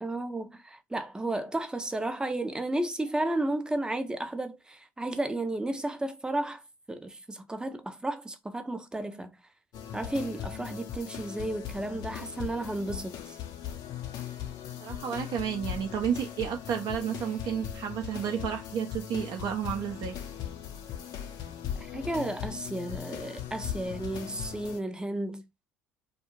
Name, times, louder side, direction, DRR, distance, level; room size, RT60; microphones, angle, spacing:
voice 1, 0.0-6.6 6.9-9.3 9.9-13.2 21.9-25.4, right 1 dB, 10° right, 0.6 m, -33 dB
sound 1, 9.7-24.8, left 9 dB, 55° left, 0.7 m, -39 dB
voice 2, 14.8-20.2, right 8 dB, 55° right, 0.7 m, -31 dB
2.4 x 2.4 x 3.0 m
hypercardioid pair, 65°, 8 cm